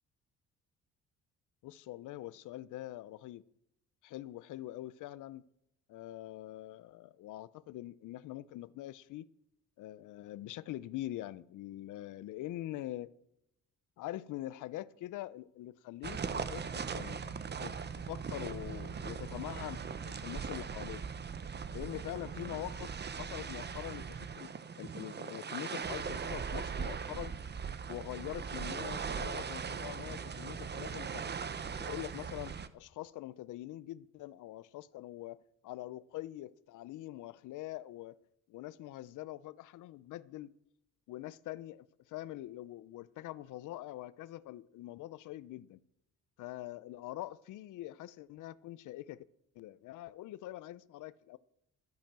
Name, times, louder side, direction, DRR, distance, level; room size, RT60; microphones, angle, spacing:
voice 1, 1.6-3.4 4.0-5.4 5.9-9.3 9.8-13.1 14.0-17.3 17.6-21.0 21.7-27.3 27.9-31.3 31.8-38.2 38.5-40.5 41.1-45.8 46.4-49.2 49.6-51.4, left 15 dB, 85° left, 0.6 m, -44 dB
sound 1, 16.0-32.7, right 6 dB, 35° right, 0.9 m, -40 dB
12.0 x 10.5 x 7.5 m
cardioid pair, 90°, 30 cm